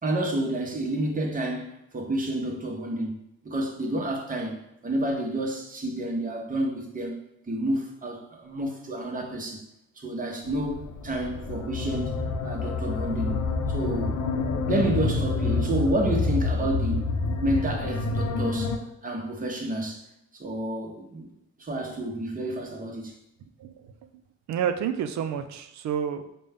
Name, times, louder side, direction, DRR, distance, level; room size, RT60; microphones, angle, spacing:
voice 1, 0.0-3.2 3.4-7.2 7.5-9.7 10.0-12.2 12.4-14.2 14.6-17.1 17.4-20.0 20.3-21.3 21.6-23.2, right 1 dB, 30° right, 1 dB, 0.9 m, -30 dB
sound 1, 10.4-18.8, left 3 dB, 70° left, 0.7 m, -28 dB
voice 2, 23.6-23.9 24.5-26.3, right 8 dB, 65° right, 8 dB, 0.5 m, -29 dB
5.1 x 2.2 x 3.4 m, 0.83 s
cardioid pair, 90°, 30 cm